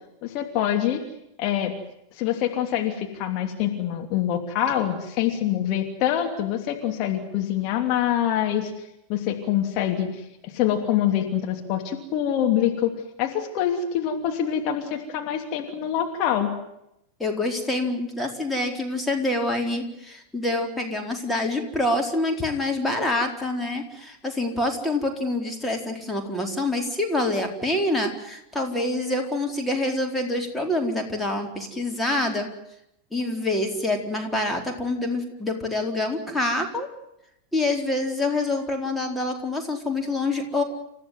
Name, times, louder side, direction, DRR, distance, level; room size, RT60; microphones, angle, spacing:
voice 1, 0.2-1.0 1.4-1.7 2.1-12.9 13.2-16.5, left 10 dB, 40° left, 3 dB, 3.0 m, -25 dB
voice 2, 17.2-32.5 33.1-36.9 37.5-40.6, left 2 dB, 5° left, 2 dB, 4.3 m, -26 dB
29.5 x 15.0 x 9.6 m, 0.82 s
figure-of-eight pair, 90°, 0 cm